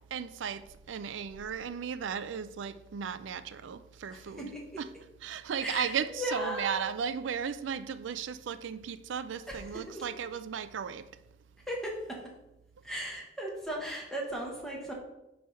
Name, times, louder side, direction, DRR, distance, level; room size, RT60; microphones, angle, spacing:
voice 1, 0.1-4.5 4.8-4.9 5.2-11.1, right 7 dB, 85° right, 0.4 m, -35 dB
voice 2, 4.1-4.8 5.6-6.8 9.5-10.0 11.7-12.2 12.8-14.9, equal, 5° left, 1.2 m, -37 dB
8.8 x 3.4 x 5.4 m
head